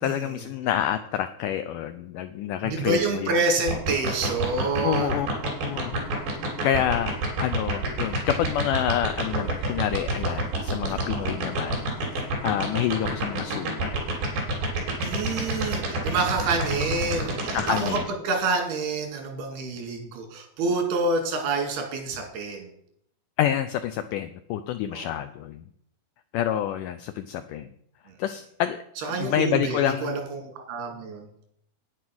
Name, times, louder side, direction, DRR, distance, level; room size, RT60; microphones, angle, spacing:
voice 1, 0.0-3.4 4.8-5.3 5.7-6.0 6.6-11.8 12.2-14.2 17.5-18.0 23.4-25.6 26.3-27.7 28.2-28.8 29.1-30.2, left 11 dB, 90° left, 10 dB, 1.8 m, -28 dB
voice 2, 2.6-5.3 10.9-11.0 15.0-22.7 24.9-25.1 29.0-31.5, right 3 dB, 90° right, 3 dB, 4.4 m, -28 dB
sound 1, 3.7-18.0, right 3 dB, 70° right, 5.2 m, -26 dB
9.9 x 9.3 x 6.1 m, 0.70 s
omnidirectional pair, 4.4 m